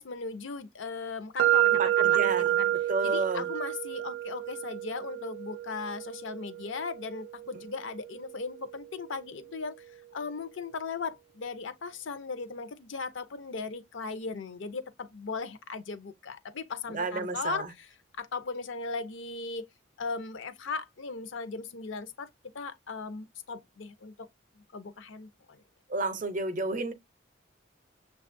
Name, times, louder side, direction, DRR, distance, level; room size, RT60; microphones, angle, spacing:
voice 1, 0.0-1.7 2.0-2.7 3.0-9.8 10.1-17.9 18.2-19.6 20.0-22.3 22.5-24.3 24.6-25.3, left 4 dB, 70° left, 0.6 m, -37 dB
sound 1, 1.4-9.3, right 13 dB, 85° right, 0.3 m, -30 dB
voice 2, 1.7-3.5 7.5-7.6 16.9-17.7 25.9-26.9, right 3 dB, 40° right, 0.6 m, -31 dB
6.6 x 2.3 x 2.5 m
head